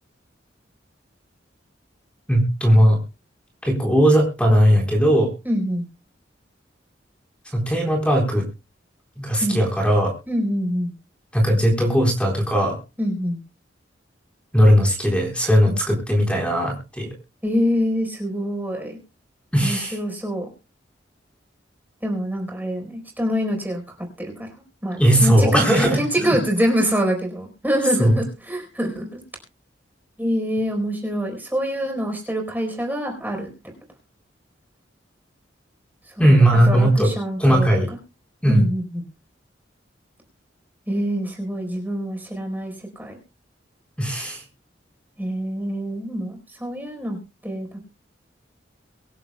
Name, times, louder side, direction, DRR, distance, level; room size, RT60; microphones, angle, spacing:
voice 1, 2.3-3.0 3.6-5.3 7.5-8.4 9.2-10.1 11.3-12.8 14.5-17.1 19.5-20.0 25.0-26.4 28.0-28.2 36.2-37.1 37.4-37.9 38.4-38.6 44.0-44.4, equal, 5° left, 0 dB, 4.0 m, -18 dB
voice 2, 5.4-5.9 9.4-9.6 10.3-10.9 13.0-13.4 17.4-19.0 19.6-20.5 22.0-23.8 24.2-24.5 24.8-29.2 30.2-33.5 36.1-38.0 38.5-39.0 40.9-43.2 45.2-47.2 47.4-47.8, equal, 10° right, 2 dB, 4.3 m, -25 dB
24.5 x 11.0 x 2.3 m, 0.29 s
head